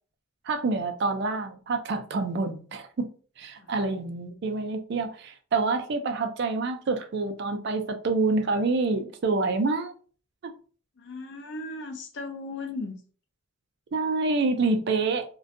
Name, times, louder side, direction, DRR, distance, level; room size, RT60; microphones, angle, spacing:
voice 1, 0.5-3.1 3.4-9.9 10.4-10.5 13.9-15.3, right 3 dB, 50° right, 0.4 m, -27 dB
voice 2, 11.0-12.9, left 3 dB, 50° left, 0.5 m, -36 dB
2.5 x 2.2 x 2.5 m
head